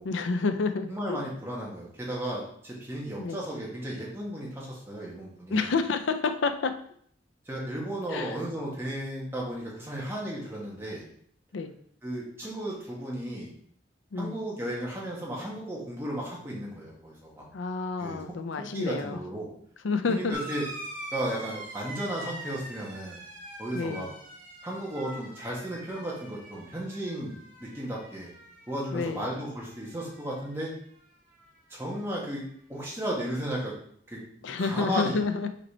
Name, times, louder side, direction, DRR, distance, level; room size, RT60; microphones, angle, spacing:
voice 1, 0.0-1.2 3.2-3.4 5.5-6.7 8.1-8.4 11.5-11.7 14.1-14.4 17.5-19.2 19.8-20.3 23.7-24.1 28.9-29.3 34.4-35.5, left 4 dB, 80° left, 9 dB, 0.5 m, -29 dB
voice 2, 0.9-5.7 7.5-11.1 12.0-13.5 14.2-17.4 18.0-19.5 20.1-20.7 21.1-23.2 23.6-24.1 24.6-27.3 27.6-28.3 28.7-30.7 31.7-32.4 32.7-33.7 34.1-34.2 34.6-35.2, right 1 dB, 15° right, -4 dB, 1.6 m, -34 dB
sound 1, 20.3-29.3 29.6-30.4 31.5-31.6, right 1 dB, 45° right, 1.6 m, -43 dB
5.1 x 4.4 x 4.3 m, 0.63 s
head